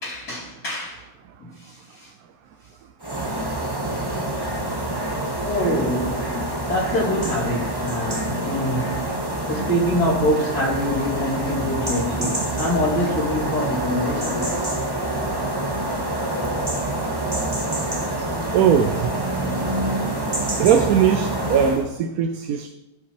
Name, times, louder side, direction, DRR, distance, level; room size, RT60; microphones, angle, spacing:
voice 1, 0.0-1.1 1.5-2.1 5.4-6.3 6.7-9.0 9.5-14.5, left 1 dB, 85° left, -14 dB, 3.8 m, -25 dB
sound 1, 3.0-21.9, right 1 dB, 15° right, 1.1 m, -26 dB
voice 2, 18.5-19.1 20.6-22.7, right 8 dB, 70° right, 8 dB, 1.0 m, -19 dB
16.5 x 5.6 x 3.0 m, 0.95 s
omnidirectional pair, 1.6 m